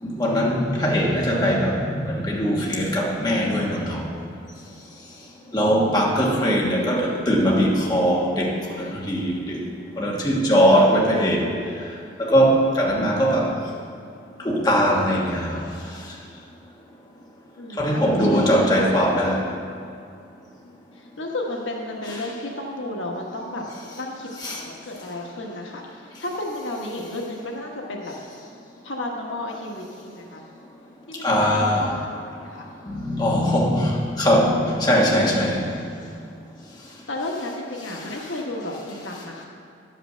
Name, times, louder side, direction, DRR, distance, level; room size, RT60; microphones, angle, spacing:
voice 1, 0.0-4.1 5.5-9.6 10.0-11.5 12.2-13.5 14.4-15.6 17.8-19.4 24.4-24.6 31.2-31.8 32.9-35.7, equal, 20° left, -3 dB, 1.4 m, -21 dB
voice 2, 17.6-18.9 21.0-23.6 23.9-28.1 28.8-30.4 31.1-32.7 37.1-39.4, left 1 dB, 85° left, 0 dB, 1.3 m, -33 dB
10.5 x 5.8 x 6.7 m, 2.4 s
head